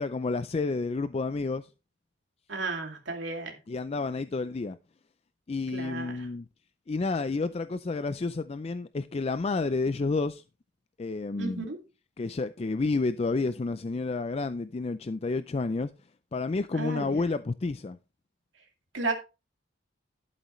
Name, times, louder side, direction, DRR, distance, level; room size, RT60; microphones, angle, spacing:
voice 1, 0.0-1.7 3.7-4.8 5.5-6.5 6.9-10.4 11.0-11.7 12.2-15.9 16.3-18.0, left 3 dB, 30° left, 0.4 m, -30 dB
voice 2, 2.5-3.5 5.7-6.2 11.4-11.8 16.7-17.2 18.9-19.1, right 3 dB, 75° right, 2.5 m, -33 dB
12.0 x 8.2 x 3.1 m
head